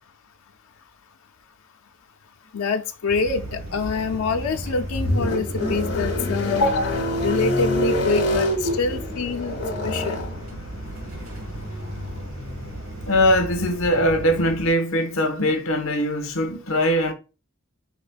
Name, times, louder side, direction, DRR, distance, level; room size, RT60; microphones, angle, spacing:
voice 1, 2.5-9.6 9.8-10.2, left 4 dB, 90° left, 0.5 m, -25 dB
sound 1, 3.1-14.7, right 1 dB, 70° right, 1.3 m, -36 dB
sound 2, 4.2-14.4, left 1 dB, 50° left, 1.3 m, -27 dB
voice 2, 10.8-11.1 13.1-17.1, equal, 70° left, 1.1 m, -21 dB
5.1 x 4.6 x 2.2 m
head